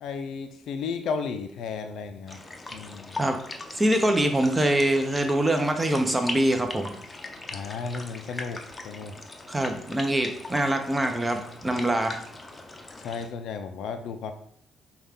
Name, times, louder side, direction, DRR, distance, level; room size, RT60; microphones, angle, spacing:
voice 1, 0.0-2.4 2.7-3.2 7.5-9.2 13.0-14.3, left 5 dB, 75° left, 7 dB, 0.4 m, -34 dB
sound 1, 2.3-13.3, left 2 dB, 25° left, 0.6 m, -40 dB
voice 2, 3.8-6.9 9.5-12.2, right 1 dB, 15° right, 5 dB, 0.7 m, -24 dB
5.4 x 2.4 x 3.5 m, 0.66 s
supercardioid pair, 70°, 0 cm